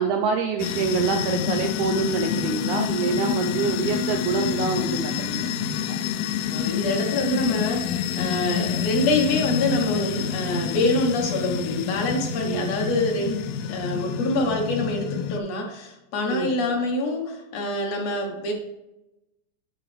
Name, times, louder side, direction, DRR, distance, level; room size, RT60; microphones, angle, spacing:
voice 1, 0.0-5.5 12.4-12.7 16.3-16.5, right 5 dB, 85° right, 4 dB, 1.7 m, -26 dB
sound 1, 0.6-15.4, left 8 dB, 85° left, 2.3 m, -28 dB
voice 2, 6.5-7.9 8.2-13.4 13.7-18.5, left 2 dB, 60° left, 1 dB, 2.0 m, -25 dB
9.8 x 4.6 x 3.3 m, 0.95 s
omnidirectional pair, 4.0 m